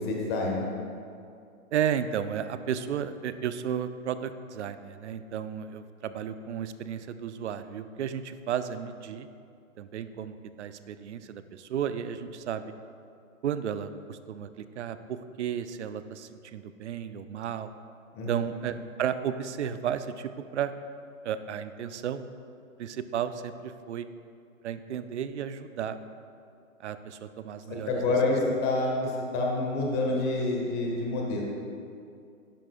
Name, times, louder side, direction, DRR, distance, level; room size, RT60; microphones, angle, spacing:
voice 1, 0.1-0.6 18.1-18.3 27.7-31.4, left 2 dB, 25° left, -1 dB, 1.4 m, -27 dB
voice 2, 1.7-9.3 9.8-12.6 13.4-17.7 18.3-20.7 21.2-22.3 22.8-24.1 24.6-26.0 26.8-28.1, right 8 dB, 55° right, 11 dB, 0.6 m, -33 dB
11.5 x 10.0 x 2.4 m, 2.4 s
figure-of-eight pair, 125°, 42 cm